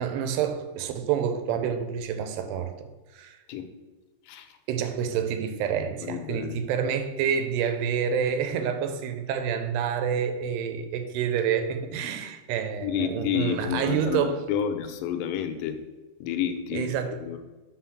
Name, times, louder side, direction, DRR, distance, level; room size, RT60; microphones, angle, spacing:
voice 1, 0.0-3.4 4.7-14.4 16.7-17.2, right 7 dB, 85° right, 7 dB, 2.8 m, -28 dB
voice 2, 4.3-4.6 6.0-6.6 12.8-15.8 16.2-17.4, left 9 dB, 85° left, 6 dB, 2.8 m, -30 dB
6.3 x 3.8 x 5.9 m, 1.2 s
omnidirectional pair, 4.8 m